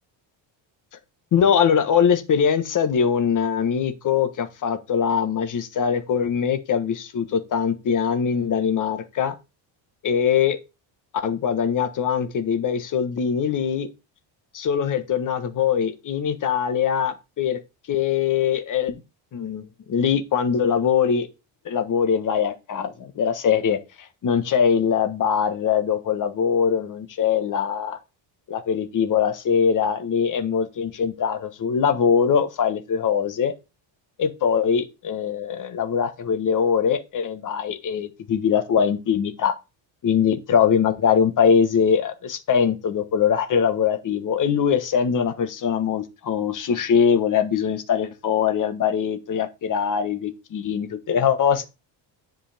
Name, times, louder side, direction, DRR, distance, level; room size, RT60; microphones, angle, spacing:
voice 1, 1.3-9.3 10.0-10.6 11.2-13.9 14.5-17.6 17.9-19.0 19.3-21.3 21.6-28.0 28.5-33.5 34.2-39.5 40.0-51.6, left 7 dB, 40° left, 1.3 m, -22 dB
10.0 x 5.2 x 3.4 m
cardioid pair, 160°, 47 cm